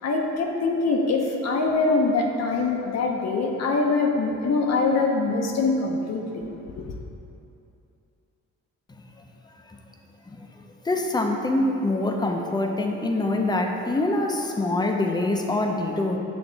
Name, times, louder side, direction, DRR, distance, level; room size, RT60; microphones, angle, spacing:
voice 1, 0.0-6.8, left 3 dB, 60° left, 1 dB, 0.8 m, -24 dB
voice 2, 10.8-16.2, left 2 dB, 15° left, 2 dB, 0.6 m, -24 dB
6.9 x 3.5 x 4.0 m, 2.8 s
cardioid pair, 90°, 30 cm